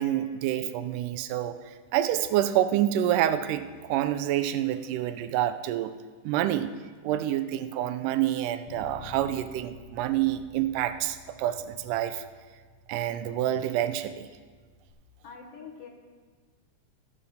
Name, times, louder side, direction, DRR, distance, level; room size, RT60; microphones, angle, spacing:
voice 1, 0.0-1.5 1.9-5.9 6.2-6.7 7.0-12.2 12.9-14.3, right 12 dB, 85° right, 11 dB, 2.1 m, -27 dB
Bass guitar, 8.7-14.9, left 4 dB, 85° left, 2.5 m, -51 dB
voice 2, 15.2-15.9, left 6 dB, 60° left, 0 dB, 1.9 m, -44 dB
14.5 x 5.5 x 6.5 m, 1.5 s
omnidirectional pair, 3.7 m